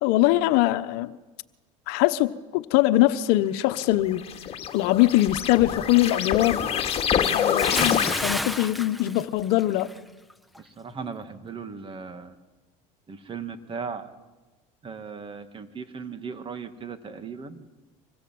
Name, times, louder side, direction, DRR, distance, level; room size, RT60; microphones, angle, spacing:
voice 1, 0.0-1.1 1.9-4.2 4.7-6.6 7.3-9.9, left 16 dB, 70° left, 1.1 m, -22 dB
sound 1, 3.6-8.6, left 8 dB, 35° left, 2.5 m, -27 dB
Bathtub (filling or washing) / Splash splatter, 7.6-10.0 10.3-10.6, left 1 dB, ahead, 1.3 m, -31 dB
voice 2, 10.6-12.3 13.1-14.1 14.8-17.6, right 5 dB, 30° right, 2.4 m, -37 dB
25.5 x 21.0 x 7.9 m
supercardioid pair, 100°, 17 cm